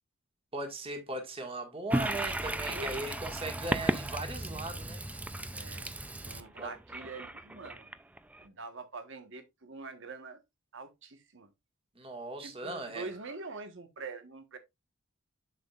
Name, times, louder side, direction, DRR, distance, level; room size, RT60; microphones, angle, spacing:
voice 1, 0.5-5.0 6.6-6.7 12.0-13.1, right 2 dB, 25° right, 1.7 m, -38 dB
Toilet flush, 1.9-8.4, right 1 dB, 5° right, 0.4 m, -35 dB
voice 2, 5.5-5.9 6.2-7.9 8.4-10.4 10.7-11.5 12.4-14.6, right 3 dB, 60° right, 1.3 m, -44 dB
7.4 x 7.4 x 2.4 m
head